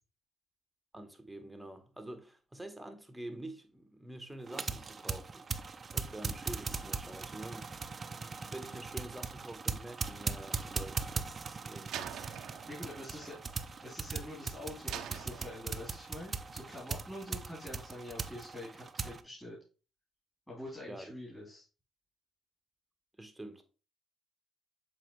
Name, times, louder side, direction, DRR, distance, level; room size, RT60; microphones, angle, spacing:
voice 1, 0.9-5.5 5.9-7.7 8.2-12.4 13.0-13.2 20.9-21.1 23.2-23.6, right 1 dB, 5° right, 1.2 m, -47 dB
sound 1, 4.4-19.2, right 4 dB, 35° right, 0.6 m, -40 dB
Slam, 11.9-14.3 14.9-16.1, right 10 dB, 80° right, 0.6 m, -45 dB
voice 2, 12.6-13.4 13.8-19.6 20.5-21.6, left 1 dB, 10° left, 3.4 m, -45 dB
7.5 x 4.2 x 3.1 m
cardioid pair, 90°, 0 cm